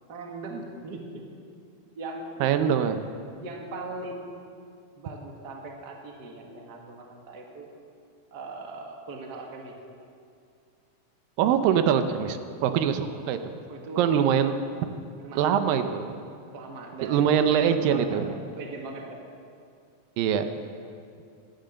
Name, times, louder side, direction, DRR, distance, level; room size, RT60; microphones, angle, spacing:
voice 1, 0.1-1.3 2.0-2.4 3.3-4.6 5.0-7.7 8.3-9.8 13.0-13.3 13.7-14.2 15.2-15.9 16.5-19.2, right 2 dB, 40° right, 1 dB, 1.7 m, -40 dB
voice 2, 2.4-3.0 11.4-13.5 14.0-14.6 15.4-16.1 17.0-18.3 20.2-20.5, right 8 dB, 85° right, 9 dB, 2.5 m, -23 dB
17.0 x 12.0 x 6.4 m, 2.4 s
omnidirectional pair, 3.9 m